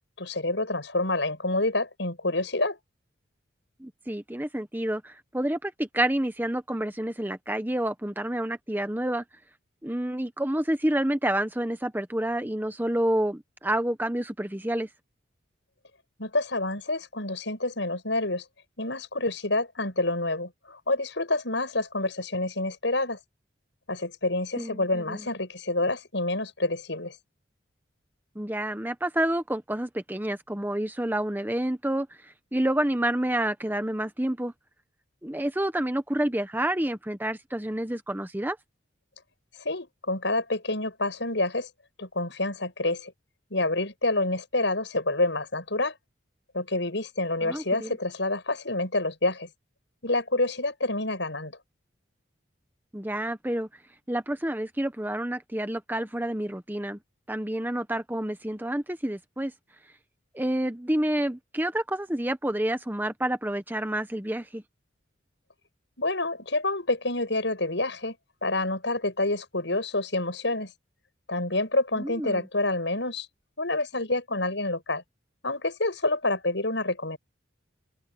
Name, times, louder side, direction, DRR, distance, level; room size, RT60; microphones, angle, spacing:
voice 1, 0.2-2.8 16.2-18.4 18.8-23.2 23.9-27.2 39.6-41.7 42.0-43.1 43.5-46.0 46.5-49.5 50.0-51.6 66.0-68.2 68.4-70.7 71.3-73.3 73.6-75.0 75.4-77.2, left 2 dB, 70° left, 7.1 m, -28 dB
voice 2, 3.8-9.2 9.8-14.9 24.6-25.3 28.3-34.5 35.2-38.6 47.4-48.0 52.9-53.7 54.1-57.0 57.3-59.5 60.3-64.6 72.0-72.5, right 1 dB, 10° right, 1.1 m, -29 dB
open air
head